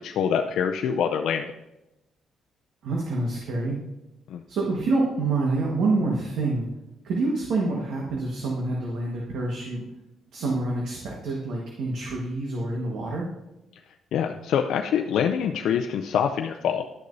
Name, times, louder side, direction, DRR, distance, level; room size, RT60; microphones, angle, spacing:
voice 1, 0.0-1.5 4.3-4.4 14.1-16.9, left 8 dB, 75° left, 4 dB, 0.4 m, -25 dB
voice 2, 2.8-3.8 4.5-6.7 7.0-9.8 10.3-13.3, right 3 dB, 75° right, -2 dB, 1.4 m, -27 dB
11.5 x 6.5 x 2.7 m, 0.94 s
cardioid pair, 90°, 0 cm